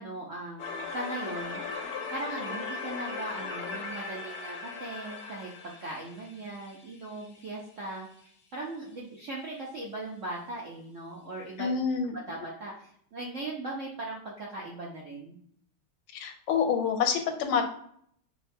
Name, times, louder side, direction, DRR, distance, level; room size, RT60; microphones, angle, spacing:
voice 1, 0.0-1.6 2.1-8.1 8.5-11.7 12.3-15.4, right 2 dB, 70° right, -3 dB, 0.7 m, -39 dB
sound 1, 0.6-7.5, left 4 dB, 70° left, 0.9 m, -38 dB
voice 2, 11.6-12.1 16.1-17.7, left 6 dB, 90° left, 5 dB, 1.5 m, -27 dB
6.5 x 2.2 x 2.7 m, 0.66 s
omnidirectional pair, 2.2 m